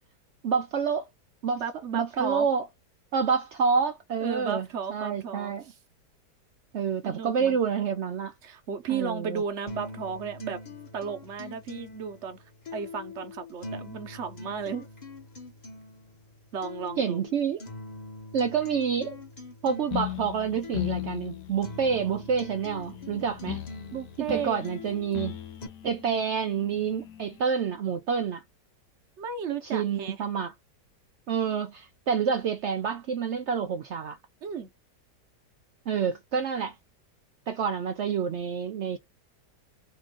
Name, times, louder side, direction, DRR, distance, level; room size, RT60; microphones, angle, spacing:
voice 1, 0.4-1.1 1.4-1.6 1.9-2.7 3.1-5.7 6.7-8.3 8.9-9.4 17.0-17.6 18.3-19.2 19.6-23.6 24.3-25.4 25.8-28.4 29.7-30.5 31.3-34.2 35.9-36.8 37.5-39.0, right 6 dB, 80° right, 0.6 m, -28 dB
voice 2, 1.5-2.5 4.2-5.5 7.0-7.6 8.4-10.6 10.9-12.4 12.7-14.9 16.5-17.2 23.9-24.6 29.2-30.2 34.4-34.7, right 6 dB, 50° right, 0.9 m, -34 dB
sound 1, 9.7-25.7, left 3 dB, 30° left, 0.9 m, -44 dB
sound 2, 19.9-27.4, left 13 dB, 80° left, 1.4 m, -38 dB
4.2 x 2.5 x 3.7 m
omnidirectional pair, 1.8 m